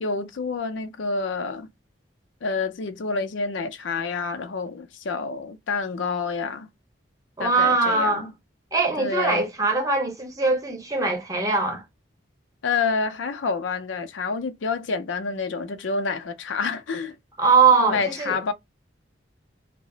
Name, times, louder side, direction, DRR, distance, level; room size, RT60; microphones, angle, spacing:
voice 1, 0.0-1.7 2.4-6.7 7.4-8.3 9.0-9.4 12.6-17.2 17.8-18.5, left 4 dB, 80° left, 0.5 m, -28 dB
voice 2, 7.4-8.3 8.7-11.8 17.4-18.4, right 4 dB, 20° right, 0.8 m, -21 dB
2.9 x 2.0 x 3.7 m
head